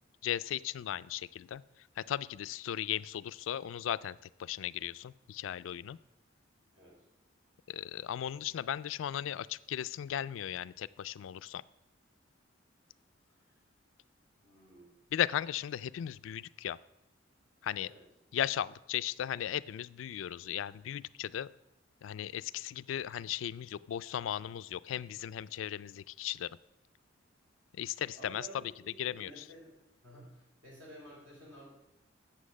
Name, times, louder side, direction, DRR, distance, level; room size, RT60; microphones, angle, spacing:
voice 1, 0.2-1.6 2.0-6.0 7.7-11.6 15.1-16.8 17.6-17.9 18.3-21.5 22.0-26.6 27.8-28.5 29.0-29.5, left 10 dB, 90° left, 18 dB, 0.3 m, -36 dB
voice 2, 14.4-14.9 17.8-18.0 28.1-28.5 28.8-29.7 30.0-31.7, right 1 dB, 80° right, -3 dB, 4.5 m, -52 dB
8.5 x 7.5 x 6.2 m, 0.87 s
head